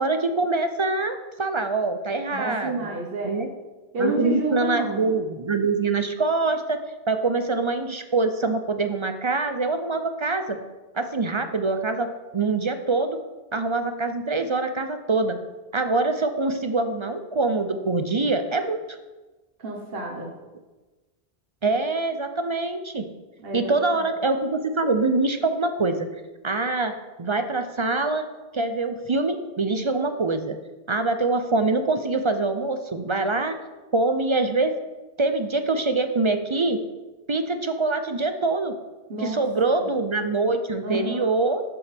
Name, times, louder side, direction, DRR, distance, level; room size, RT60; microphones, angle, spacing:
voice 1, 0.0-2.9 3.2-3.5 4.0-6.8 7.1-10.6 10.9-12.1 12.3-13.2 13.5-15.4 15.7-19.0 21.6-23.1 23.5-26.1 26.4-28.3 28.5-30.6 30.9-33.6 33.9-34.8 35.2-36.8 37.3-38.7 39.2-41.6, right 3 dB, 35° right, 8 dB, 0.5 m, -24 dB
voice 2, 2.3-3.4 3.9-5.0 19.6-20.3 23.4-23.7 39.1-39.4 39.7-39.9 40.8-41.3, right 2 dB, 65° right, -1 dB, 1.5 m, -29 dB
12.5 x 6.9 x 3.5 m, 1.2 s
omnidirectional pair, 1.0 m